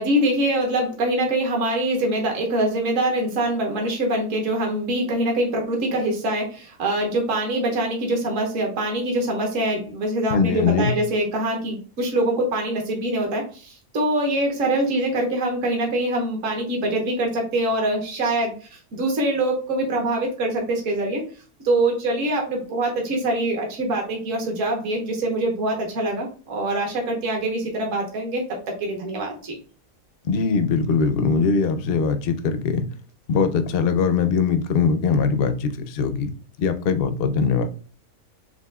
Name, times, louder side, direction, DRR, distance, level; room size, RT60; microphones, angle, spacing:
voice 1, 0.0-21.2 21.6-28.4 28.8-29.6, right 1 dB, 60° right, 1.4 m, -24 dB
voice 2, 10.3-10.9 30.2-32.9 33.3-36.3 36.6-37.7, left 5 dB, 60° left, 0.6 m, -21 dB
7.0 x 2.5 x 2.3 m
omnidirectional pair, 1.5 m